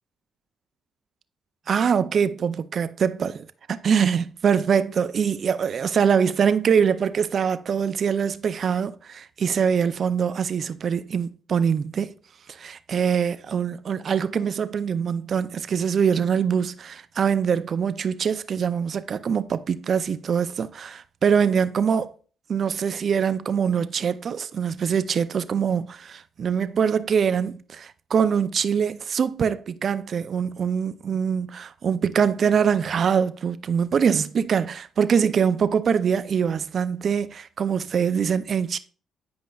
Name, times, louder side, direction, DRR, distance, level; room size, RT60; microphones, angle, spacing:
voice 1, 1.7-12.1 12.5-22.1 22.5-38.8, right 7 dB, 50° right, 0.4 m, -23 dB
9.4 x 5.1 x 2.4 m
cardioid pair, 90°, 0 cm